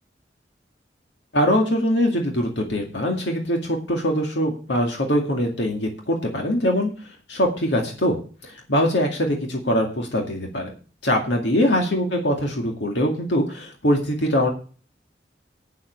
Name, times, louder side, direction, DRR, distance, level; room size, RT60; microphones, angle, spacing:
voice 1, 1.3-6.9 7.3-10.7 11.0-14.5, equal, 75° left, 1 dB, 2.1 m, -22 dB
8.8 x 7.8 x 6.5 m, 0.37 s
head